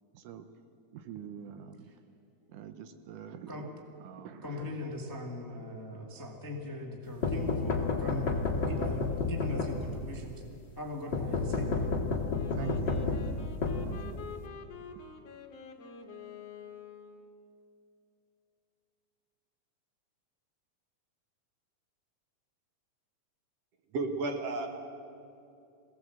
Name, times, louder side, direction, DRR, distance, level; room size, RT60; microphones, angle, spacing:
voice 1, 0.9-1.9 2.5-3.7 4.0-4.7 12.5-14.2, right 8 dB, 75° right, 9 dB, 2.3 m, -45 dB
voice 2, 4.4-10.4 10.7-11.9, left 2 dB, 10° left, 1 dB, 1.0 m, -40 dB
sound 1, 7.2-10.2 11.1-14.4, left 4 dB, 40° left, 2.1 m, -31 dB
Wind instrument woodwind instrument, 12.3-17.5, left 6 dB, 55° left, 2.3 m, -47 dB
voice 3, 23.9-24.7, right 3 dB, 55° right, 4 dB, 2.4 m, -32 dB
22.0 x 17.5 x 7.9 m, 2.6 s
omnidirectional pair, 3.8 m